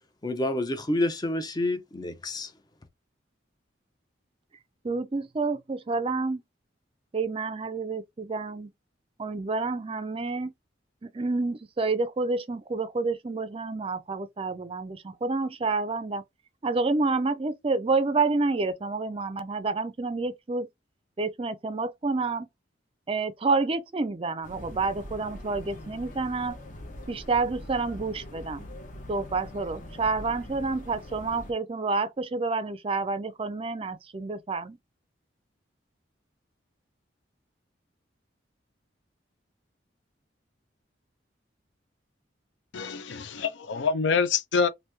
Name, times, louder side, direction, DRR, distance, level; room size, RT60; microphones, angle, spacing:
voice 1, 0.2-2.5, left 1 dB, 20° left, 0.5 m, -28 dB
voice 2, 4.8-6.4 7.1-8.7 9.2-10.5 11.0-16.2 16.6-20.7 21.2-22.5 23.1-26.6 27.1-28.6 29.1-34.8, right 3 dB, 30° right, 0.4 m, -29 dB
sound 1, 24.4-31.5, left 1 dB, 45° left, 0.8 m, -43 dB
voice 3, 42.7-44.7, left 5 dB, 75° left, 0.5 m, -26 dB
2.9 x 2.6 x 3.4 m
head